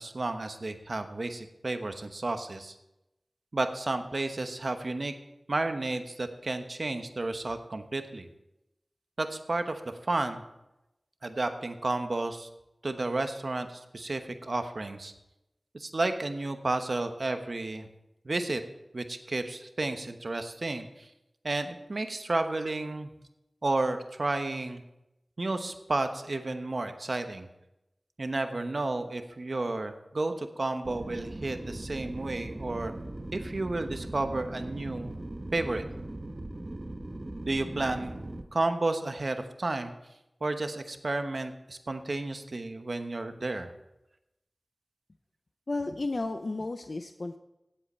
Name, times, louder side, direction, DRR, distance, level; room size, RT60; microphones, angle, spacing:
voice 1, 0.0-2.7 3.5-5.1 5.5-8.3 9.2-10.4 11.2-12.5 12.8-15.1 15.7-17.9 18.2-18.6 18.9-21.1 21.4-23.1 23.6-24.8 25.4-27.5 28.2-33.0 33.3-35.1 35.5-35.8 37.4-39.9 40.4-43.7, right 2 dB, 65° right, 7 dB, 1.0 m, -32 dB
sound 1, 30.8-38.4, right 1 dB, 40° right, 1.0 m, -39 dB
voice 2, 45.7-47.4, left 2 dB, 65° left, 7 dB, 0.5 m, -33 dB
17.0 x 7.9 x 4.4 m, 0.92 s
wide cardioid pair, 55°, 0 cm